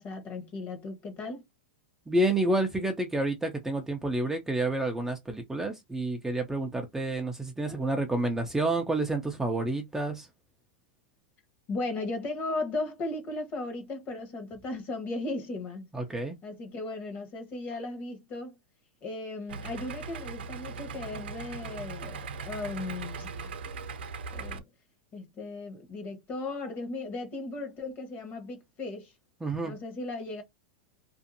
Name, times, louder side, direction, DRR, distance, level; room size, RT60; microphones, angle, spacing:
voice 1, 0.0-1.4 7.7-7.8 11.7-15.9 16.4-18.5 19.0-23.8 24.3-24.6 25.1-29.1 29.6-30.4, left 2 dB, 30° left, 1.0 m, -36 dB
voice 2, 2.1-10.3 15.9-16.4 29.4-29.7, right 2 dB, 5° right, 0.4 m, -29 dB
Idling, 19.5-24.6, right 4 dB, 85° right, 0.5 m, -39 dB
2.6 x 2.4 x 2.6 m
hypercardioid pair, 130°, 5 cm